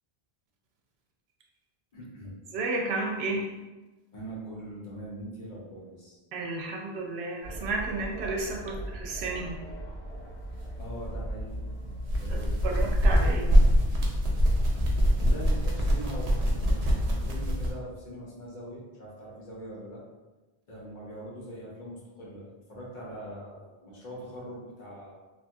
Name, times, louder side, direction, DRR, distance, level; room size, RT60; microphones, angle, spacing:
voice 1, 1.9-2.4 4.1-6.2 8.6-8.9 10.8-11.6 12.2-12.8 15.2-20.0 20.7-25.1, right 1 dB, 55° left, -6 dB, 0.9 m, -42 dB
voice 2, 2.5-3.5 6.3-9.6 12.6-13.6, right 3 dB, 85° right, 0 dB, 0.8 m, -32 dB
sound 1, 7.4-13.1, right 1 dB, 75° left, 1.2 m, -41 dB
sound 2, 10.5-17.7, equal, 50° right, 0.5 m, -24 dB
2.8 x 2.6 x 2.2 m, 1.1 s
omnidirectional pair, 1.0 m